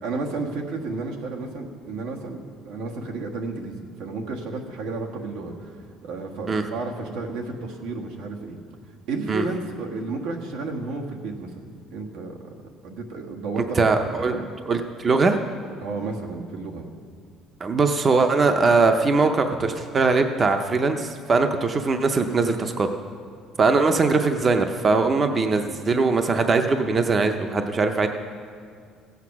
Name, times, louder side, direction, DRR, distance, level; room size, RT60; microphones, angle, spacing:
voice 1, 0.0-5.7 6.0-8.6 9.1-12.5 12.8-13.9 14.2-14.4 15.8-16.8, right 3 dB, 90° right, 1 dB, 1.5 m, -32 dB
voice 2, 13.6-14.3 14.7-15.4 17.6-22.9 23.6-28.1, right 4 dB, 25° right, 6 dB, 0.6 m, -21 dB
16.0 x 8.1 x 5.9 m, 2.1 s
cardioid pair, 160°, 0 cm